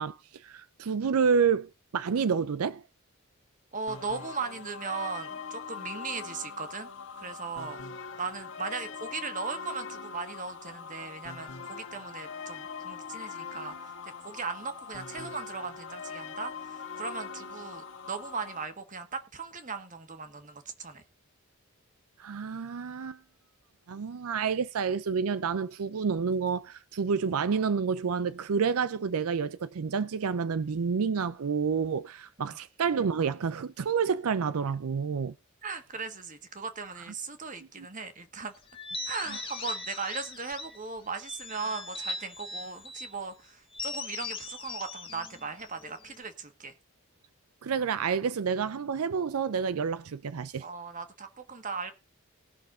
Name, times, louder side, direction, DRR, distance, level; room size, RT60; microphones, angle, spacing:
voice 1, 0.0-2.8 22.2-23.2 23.9-35.3 37.8-37.9 47.6-50.6, right 6 dB, 80° right, 0.5 m, -29 dB
voice 2, 3.7-6.9 7.1-7.8 8.2-21.0 35.6-38.5 39.0-46.7 50.6-51.9, right 4 dB, 35° right, 1.5 m, -38 dB
sound 1, 3.9-18.6, left 5 dB, 60° left, 1.6 m, -42 dB
sound 2, 38.7-40.8 41.2-43.1 43.7-46.2, left 3 dB, 25° left, 1.8 m, -39 dB
19.0 x 6.3 x 3.9 m
head